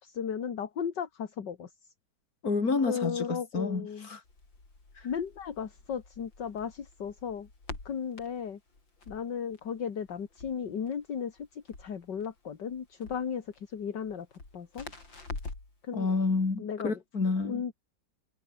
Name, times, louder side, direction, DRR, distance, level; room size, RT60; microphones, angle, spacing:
voice 1, 0.0-1.7 2.9-4.1 5.0-7.5 7.9-8.6 9.1-14.3 14.5-14.9 15.8-16.2 16.6-17.0 17.4-17.7, left 7 dB, 70° left, 2.4 m, -35 dB
voice 2, 2.4-4.2 15.9-17.6, left 4 dB, 50° left, 3.8 m, -29 dB
Crackle, 4.2-15.8, left 3 dB, 85° left, 6.5 m, -47 dB
omnidirectional pair, 2.0 m